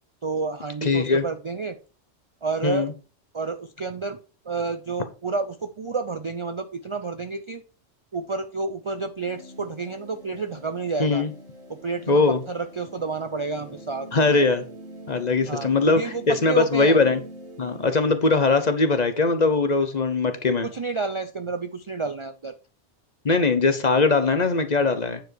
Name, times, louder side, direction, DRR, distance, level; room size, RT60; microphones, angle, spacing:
voice 1, 0.2-1.8 2.4-2.9 3.3-4.2 4.5-7.6 8.1-11.2 11.7-14.4 15.4-16.2 16.5-17.0 20.6-22.5, right 4 dB, 45° right, 9 dB, 0.4 m, -30 dB
voice 2, 0.8-1.3 2.6-2.9 11.0-11.3 12.1-12.4 14.1-14.6 15.1-17.2 17.6-20.7 23.2-25.2, left 3 dB, 40° left, 9 dB, 0.9 m, -21 dB
sound 1, 9.2-17.9, right 1 dB, 65° right, 2.4 m, -44 dB
9.3 x 4.9 x 4.6 m, 0.34 s
omnidirectional pair, 1.3 m